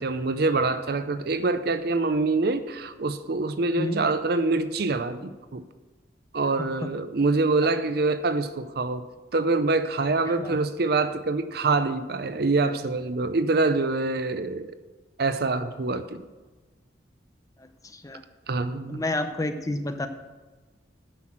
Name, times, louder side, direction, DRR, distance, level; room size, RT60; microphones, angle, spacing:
voice 1, 0.0-5.6 6.3-9.0 9.3-14.7 15.2-16.2 18.5-19.0, right 3 dB, 55° right, 11 dB, 0.6 m, -25 dB
voice 2, 6.6-6.9 10.3-10.6 17.6-18.2 18.9-20.1, left 2 dB, 20° left, 8 dB, 0.6 m, -30 dB
9.7 x 6.1 x 7.4 m, 1.2 s
head